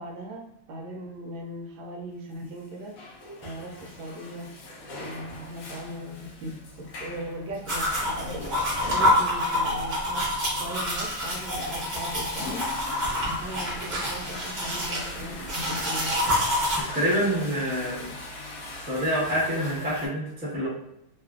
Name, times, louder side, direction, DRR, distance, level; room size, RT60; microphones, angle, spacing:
voice 1, 0.0-3.0 3.4-4.5 5.0-12.7 13.2-16.2, right 1 dB, 75° right, 0 dB, 1.3 m, -39 dB
Water / Toilet flush, 2.6-20.1, left 2 dB, 75° left, 0.7 m, -40 dB
sound 1, 7.7-16.8, left 1 dB, 50° right, 0.5 m, -27 dB
voice 2, 16.8-18.1 18.9-20.7, equal, 10° right, -8 dB, 0.6 m, -27 dB
3.2 x 2.4 x 2.4 m, 0.82 s
omnidirectional pair, 2.2 m